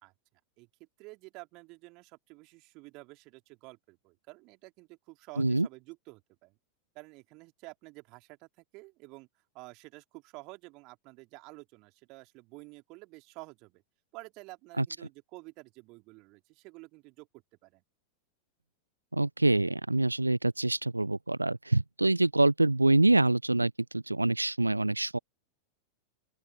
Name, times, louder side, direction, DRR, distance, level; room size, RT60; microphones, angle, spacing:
voice 1, 1.0-6.5 6.9-9.3 9.5-13.8 14.1-17.3 17.6-17.8, right 25 dB, 40° right, 2.9 m, -50 dB
voice 2, 5.4-5.7 14.8-14.9 19.1-25.2, right 2 dB, 85° right, 0.6 m, -25 dB
open air
figure-of-eight pair, 90°, 0 cm